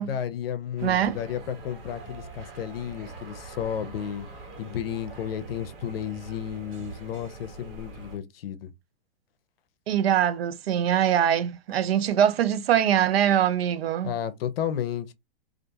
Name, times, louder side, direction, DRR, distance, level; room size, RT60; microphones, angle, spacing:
voice 1, 0.0-4.3 4.6-8.7 14.0-15.1, left 9 dB, 75° left, 0.6 m, -32 dB
sound 1, 0.8-8.2, right 3 dB, 65° right, 1.3 m, -43 dB
voice 2, 0.8-1.2 9.9-14.1, right 10 dB, 85° right, 0.5 m, -23 dB
2.5 x 2.3 x 2.7 m
hypercardioid pair, 135°, 29 cm